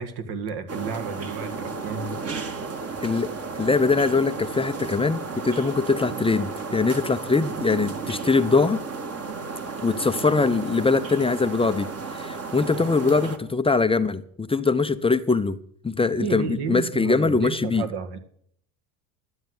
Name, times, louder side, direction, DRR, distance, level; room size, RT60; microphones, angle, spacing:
voice 1, 0.0-2.2 15.9-18.2, right 6 dB, 55° right, 1.9 m, -32 dB
sound 1, 0.7-13.4, right 4 dB, 30° right, 1.8 m, -33 dB
voice 2, 3.0-3.3 3.6-8.8 9.8-15.6 15.8-17.9, left 4 dB, 10° left, 0.7 m, -22 dB
12.5 x 8.1 x 7.9 m
supercardioid pair, 100°, 45 cm